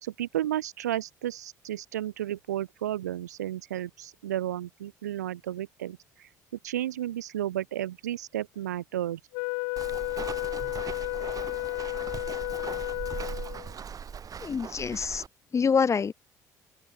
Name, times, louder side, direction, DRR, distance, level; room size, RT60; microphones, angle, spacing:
voice 1, 0.0-6.3 6.6-9.2, right 12 dB, 90° right, 2.5 m, -33 dB
Wind instrument woodwind instrument, 9.3-13.7, left 40 dB or more, 75° left, 0.8 m, -32 dB
Walk footsteps, 9.8-15.3, right 7 dB, 40° right, 3.8 m, -39 dB
voice 2, 14.4-15.2 15.5-16.1, left 6 dB, 35° left, 0.9 m, -26 dB
open air
hypercardioid pair, 60°, 9 cm